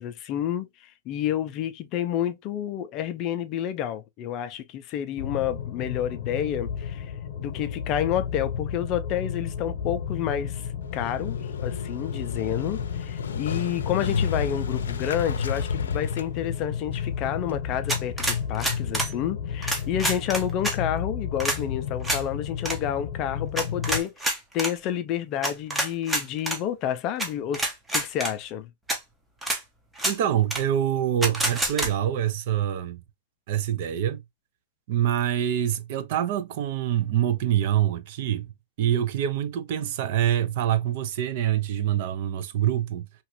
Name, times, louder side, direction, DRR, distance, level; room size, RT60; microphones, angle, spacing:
voice 1, 0.0-7.1 7.4-27.6 27.9-28.7, left 10 dB, 30° left, 0.4 m, -30 dB
sound 1, 5.2-24.0, left 7 dB, 55° left, 0.9 m, -33 dB
Motorcycle, 10.8-17.6, left 5 dB, 90° left, 0.5 m, -32 dB
sound 2, 17.9-19.1 19.6-20.8 21.4-21.6 22.0-22.2 22.6-22.8 23.6-24.7 25.4-26.6 27.2-27.3 27.5-28.3 28.9-29.0 29.4-29.6 30.0-30.2 30.5-30.6 31.2-31.9, right 1 dB, 5° right, 0.7 m, -27 dB
voice 2, 30.0-33.0 33.5-34.2 34.9-38.5 38.8-43.1, right 10 dB, 50° right, 0.5 m, -25 dB
2.9 x 2.5 x 3.1 m
hypercardioid pair, 150°, 0 cm